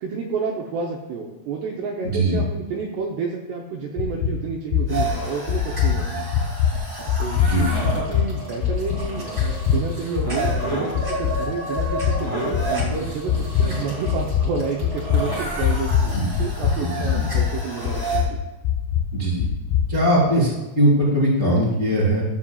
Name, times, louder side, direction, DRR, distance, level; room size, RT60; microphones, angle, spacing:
voice 1, 0.0-6.0 7.2-7.7 7.9-9.3 9.7-12.6 13.0-18.4, right 5 dB, 80° right, 0 dB, 2.4 m, -30 dB
voice 2, 2.0-2.4 6.1-6.2 7.4-7.8 16.1-16.2 16.8-17.2 19.1-19.4 19.9-20.5 20.7-22.2, equal, 40° left, -7 dB, 1.0 m, -20 dB
sound 1, 4.0-4.3 4.7-5.1 5.5-6.0 6.3-6.7 7.1-7.5 7.8-8.2 8.6-9.0 9.4-9.8 10.2-10.6 10.9-11.4 11.8-12.1 12.5-12.9 13.3-13.6 14.1-14.5 14.8-15.2 15.6-16.1 16.4-16.8 17.1-17.4 17.8-18.3 18.6-19.0 19.4-19.8, left 9 dB, 80° left, 2.4 m, -21 dB
sound 2, 4.9-18.2, right 2 dB, 60° right, 0.4 m, -30 dB
14.0 x 7.3 x 2.3 m, 1.1 s
omnidirectional pair, 5.8 m